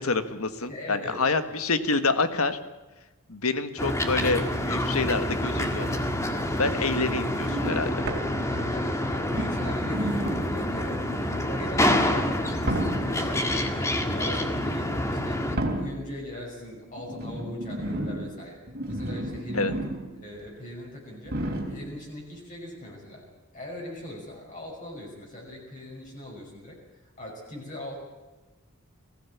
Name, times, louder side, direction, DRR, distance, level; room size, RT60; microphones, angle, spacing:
voice 1, 0.0-2.6 3.3-5.9 6.6-7.9 19.5-19.7, left 3 dB, 80° left, 10 dB, 1.6 m, -27 dB
voice 2, 0.7-1.2 8.5-11.0 11.3-13.8 14.1-18.6 18.9-19.8 20.2-21.4 21.7-23.3 23.5-28.0, left 1 dB, 35° left, -3 dB, 5.9 m, -40 dB
sound 1, 3.8-15.6, left 1 dB, 15° left, 1.8 m, -27 dB
sound 2, 7.4-8.8 9.3-10.7 11.5-11.8 12.6-13.3 14.6-14.8 15.5-16.2 17.0-20.2 20.5-20.6 21.3-22.0 22.9-23.0, right 1 dB, 45° right, 3.3 m, -32 dB
20.5 x 16.0 x 8.5 m, 1.1 s
head